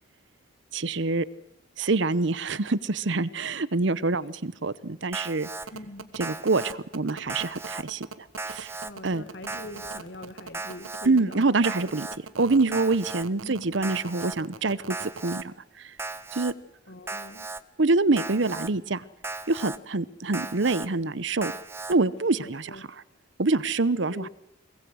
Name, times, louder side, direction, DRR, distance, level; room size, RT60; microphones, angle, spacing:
voice 1, 0.7-1.3 1.8-5.5 6.1-8.1 8.5-8.7 9.0-9.2 11.0-12.1 12.4-15.9 16.3-16.5 17.8-19.0 19.5-21.5 21.9-22.9 23.4-24.3, right 3 dB, 65° right, 18 dB, 0.8 m, -25 dB
Alarm, 5.1-5.7 6.2-6.7 7.3-7.8 8.4-8.9 9.5-10.0 10.5-11.1 11.6-12.2 12.7-13.3 13.8-14.4 14.9-15.4 16.0-16.5 17.1-17.6 18.2-18.7 19.2-19.8 20.3-20.9 21.4-21.9, right 3 dB, 10° right, 0.7 m, -36 dB
voice 2, 5.7-6.1 8.8-11.9 13.4-13.7 16.9-17.5 22.3-22.9 24.1-24.3, left 1 dB, 60° left, 11 dB, 1.7 m, -43 dB
sound 1, 5.7-15.4, right 4 dB, 80° right, 1.4 m, -41 dB
23.0 x 20.5 x 6.4 m, 0.83 s
head